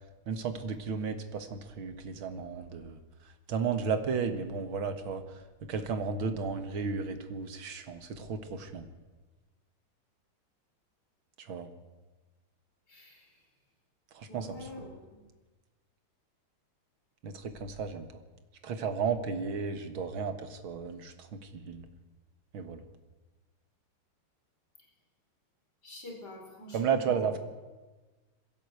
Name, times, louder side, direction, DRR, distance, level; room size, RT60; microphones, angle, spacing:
voice 1, 0.3-3.0 3.5-5.2 5.7-8.9 11.5-11.7 14.2-14.6 17.2-18.1 18.6-21.9 22.5-22.8 26.7-27.4, right 5 dB, 75° right, 8 dB, 2.4 m, -33 dB
voice 2, 12.9-13.4 14.3-15.2 25.8-27.4, left 1 dB, 50° left, 0 dB, 5.0 m, -47 dB
22.0 x 15.5 x 8.3 m, 1.2 s
omnidirectional pair, 2.3 m